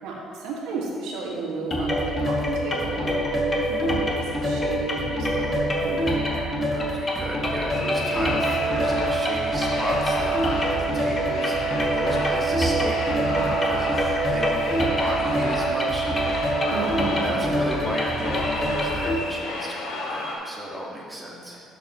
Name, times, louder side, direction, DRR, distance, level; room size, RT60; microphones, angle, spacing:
voice 1, 0.0-6.5 13.2-13.5 16.7-17.5 21.2-21.6, right 3 dB, 85° right, -3 dB, 1.9 m, -33 dB
sound 1, 1.7-19.2, equal, 20° left, 1.3 m, -26 dB
voice 2, 6.7-11.6 11.9-16.9 17.2-21.6, equal, 10° right, -4 dB, 2.0 m, -34 dB
sound 2, 7.7-20.3, left 2 dB, 90° left, 1.6 m, -33 dB
Wind instrument woodwind instrument, 8.3-17.7, right 7 dB, 40° right, 0.3 m, -29 dB
12.0 x 7.1 x 3.1 m, 2.4 s
cardioid pair, 130°, 0 cm